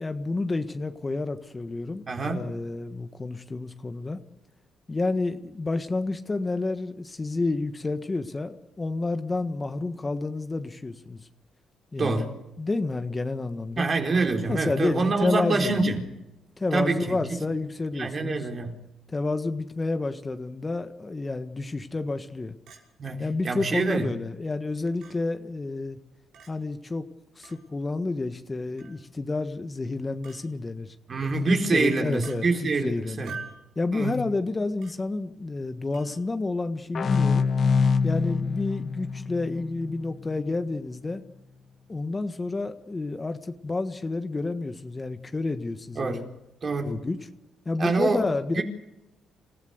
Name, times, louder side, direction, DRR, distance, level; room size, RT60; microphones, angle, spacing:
voice 1, 0.0-4.2 4.9-11.3 11.9-12.3 12.6-13.9 14.5-15.8 16.6-18.5 19.1-22.5 23.2-26.0 26.5-27.0 27.3-30.9 31.7-33.3 33.7-37.5 38.0-41.2 41.9-46.3 46.8-47.3 47.6-48.6, left 3 dB, 25° left, 1.5 m, -30 dB
voice 2, 2.1-2.4 12.0-12.3 13.8-16.1 16.7-17.4 18.0-18.8 23.0-24.1 31.1-33.3 33.9-34.2 46.0-46.2 46.6-47.0 47.8-48.2 48.5-48.6, right 3 dB, 40° right, 4.2 m, -26 dB
Chink clink, 22.7-22.8 23.8-23.9 25.0-25.2 26.3-26.5 27.4-27.6 28.8-29.0 30.2-30.4 31.5-31.6 32.2-32.4 33.3-33.6 34.8-35.0 35.9-36.2 37.1-37.3, right 5 dB, 80° right, 5.8 m, -43 dB
sound 1, 36.9-40.4, left 5 dB, 50° left, 1.2 m, -25 dB
28.0 x 15.5 x 8.1 m
cardioid pair, 90°, 0 cm